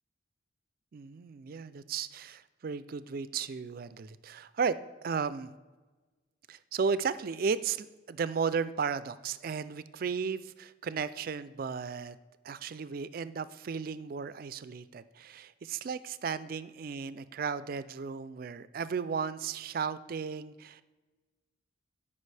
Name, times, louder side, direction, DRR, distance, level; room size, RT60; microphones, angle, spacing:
voice 1, 0.9-4.8 5.0-5.5 6.5-12.2 12.4-20.8, right 5 dB, 45° right, 15 dB, 0.3 m, -34 dB
12.5 x 5.5 x 3.3 m, 1.3 s
head